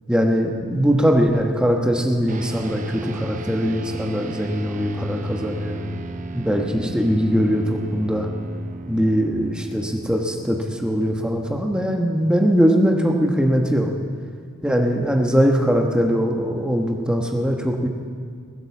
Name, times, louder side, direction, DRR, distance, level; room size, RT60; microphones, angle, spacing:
voice 1, 0.1-5.8 6.3-8.3 8.9-13.9 14.6-17.9, equal, 5° right, 2 dB, 1.2 m, -21 dB
sound 1, 2.3-11.9, right 3 dB, 35° right, 0.7 m, -36 dB
20.5 x 8.0 x 7.1 m, 2.1 s
head